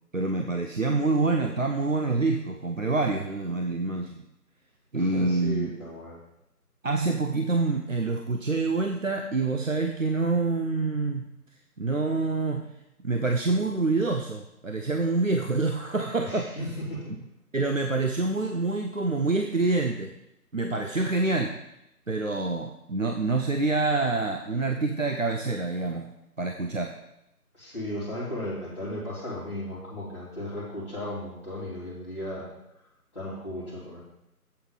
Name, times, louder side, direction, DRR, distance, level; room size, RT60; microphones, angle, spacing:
voice 1, 0.1-4.2 4.9-5.7 6.8-11.3 11.8-12.7 13.0-16.6 17.5-20.1 20.5-21.6 22.1-26.9, right 3 dB, 55° right, 4 dB, 0.7 m, -26 dB
voice 2, 4.9-6.2 16.2-17.2 27.5-32.5 33.1-34.0, left 1 dB, 20° left, -13 dB, 2.8 m, -35 dB
7.8 x 7.8 x 4.0 m, 0.85 s
figure-of-eight pair, 180°, 47 cm